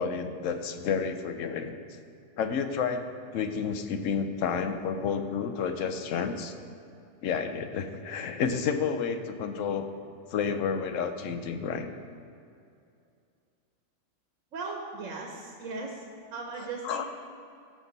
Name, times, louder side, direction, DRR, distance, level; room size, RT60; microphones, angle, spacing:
voice 1, 0.0-1.8 2.4-3.1 3.3-6.5 7.2-9.9 10.3-11.9 16.8-17.0, left 6 dB, 80° left, 8 dB, 1.1 m, -30 dB
voice 2, 14.5-16.0 16.3-17.0, right 3 dB, 85° right, 0 dB, 1.3 m, -37 dB
15.5 x 6.1 x 4.0 m, 2.5 s
omnidirectional pair, 1.3 m